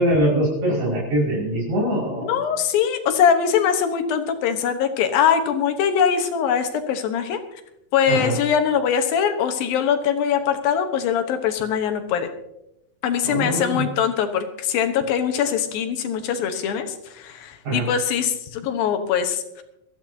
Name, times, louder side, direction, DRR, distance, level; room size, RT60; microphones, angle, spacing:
voice 1, 0.0-2.3 8.1-8.3 13.2-13.8 17.7-17.9, right 1 dB, 55° right, -3 dB, 6.8 m, -22 dB
voice 2, 2.2-7.4 7.9-12.3 13.0-19.6, left 8 dB, 85° left, 7 dB, 3.0 m, -22 dB
22.0 x 14.5 x 2.8 m, 0.84 s
omnidirectional pair, 4.0 m